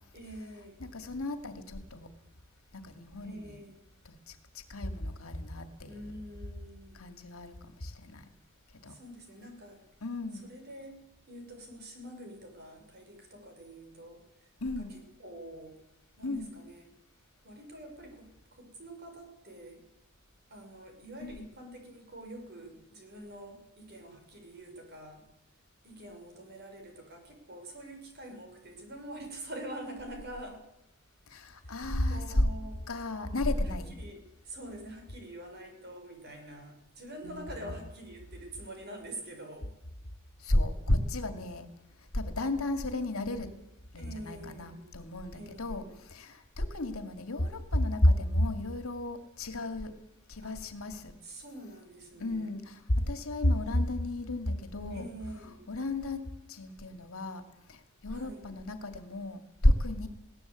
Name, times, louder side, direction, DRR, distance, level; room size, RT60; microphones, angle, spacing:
voice 1, 0.1-0.8 3.2-3.8 5.9-7.0 8.9-9.8 10.4-15.8 16.2-16.8 17.4-19.8 20.5-25.3 25.8-30.6 31.6-31.8 32.1-32.8 33.9-39.8 43.9-44.9 45.3-45.9 50.4-50.6 51.2-52.5 54.9-55.7 58.1-58.5, right 1 dB, 45° right, 4 dB, 6.0 m, -46 dB
voice 2, 0.8-2.1 2.7-3.6 4.0-6.1 6.9-8.3 8.8-9.0 10.0-10.5 14.6-15.0 16.2-16.5 21.2-21.5 31.3-32.5 32.9-33.9 37.2-37.7 40.4-41.7 42.1-43.5 43.9-49.9 50.3-51.2 52.2-55.1 55.5-56.2 56.5-60.1, left 1 dB, 70° left, 8 dB, 2.3 m, -32 dB
21.0 x 17.5 x 8.4 m, 0.88 s
head